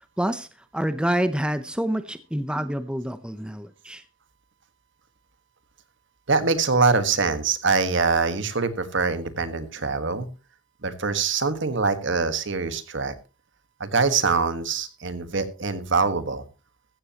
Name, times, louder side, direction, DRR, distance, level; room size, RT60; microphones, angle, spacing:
voice 1, 0.2-4.0, right 1 dB, 5° right, 0.7 m, -27 dB
voice 2, 6.3-10.3 10.8-13.1 13.8-16.4, right 4 dB, 65° right, 1.6 m, -24 dB
15.0 x 14.5 x 2.9 m
head